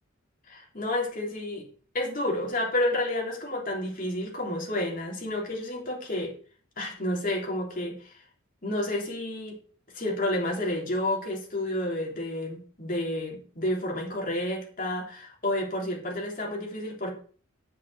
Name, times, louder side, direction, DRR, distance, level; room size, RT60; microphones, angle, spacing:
voice 1, 0.5-1.7 1.9-6.3 6.8-8.2 8.6-9.6 9.9-17.1, left 1 dB, 45° left, -1 dB, 3.3 m, -30 dB
8.1 x 6.2 x 6.4 m, 0.43 s
head